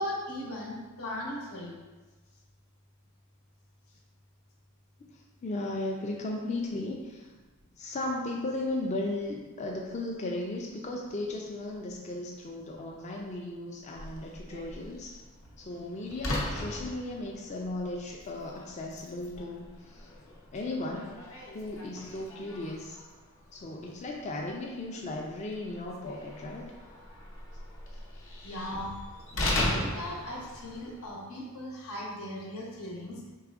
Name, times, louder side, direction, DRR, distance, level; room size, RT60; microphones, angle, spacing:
voice 1, 0.0-1.7 28.4-28.9 29.3-33.3, left 1 dB, 90° left, -3 dB, 1.0 m, -38 dB
voice 2, 5.1-7.3 7.8-15.2 15.6-20.1 20.5-21.1 21.5-23.0 23.5-26.7, left 2 dB, 30° left, -1 dB, 0.3 m, -36 dB
Slam, 14.0-31.1, left 1 dB, 60° left, 0.7 m, -39 dB
4.7 x 3.3 x 2.5 m, 1.2 s
head